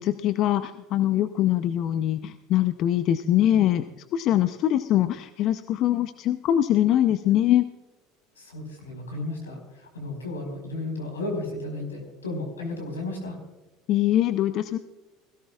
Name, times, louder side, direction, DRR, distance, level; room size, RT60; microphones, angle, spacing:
voice 1, 0.0-3.8 4.1-7.7 13.9-14.8, left 12 dB, 50° left, 11 dB, 0.7 m, -23 dB
voice 2, 8.4-13.4, left 2 dB, 90° left, 2 dB, 4.6 m, -33 dB
21.5 x 17.0 x 2.4 m, 1.1 s
hypercardioid pair, 75°, 0 cm